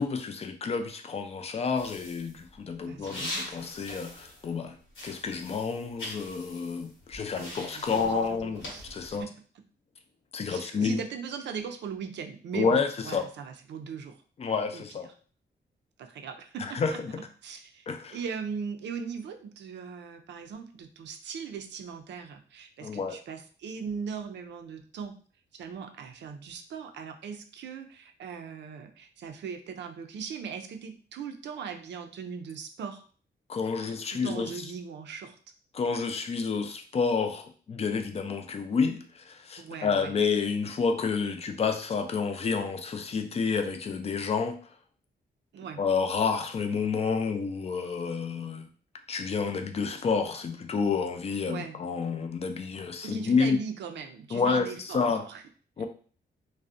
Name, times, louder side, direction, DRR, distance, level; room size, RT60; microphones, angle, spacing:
voice 1, 0.0-4.8 5.0-9.3 10.3-11.0 12.5-13.2 14.4-15.1 16.6-17.1 17.9-18.2 22.8-23.2 33.5-34.5 35.7-44.6 45.8-48.7 49.1-53.6 54.3-55.3 55.8-55.9, left 5 dB, 35° left, 6 dB, 0.3 m, -29 dB
sound 1, 1.8-4.6 4.9-9.2, left 1 dB, 80° left, 1.0 m, -42 dB
voice 2, 2.8-3.7 7.3-9.3 10.5-14.2 14.7-14.8 16.0-17.0 17.4-25.2 25.5-33.0 33.8-35.4 39.6-40.1 45.5-45.8 51.4-51.8 53.0-55.4 55.8-55.9, right 6 dB, 75° right, 6 dB, 0.4 m, -39 dB
2.5 x 2.1 x 2.4 m, 0.42 s
cardioid pair, 105°, 19 cm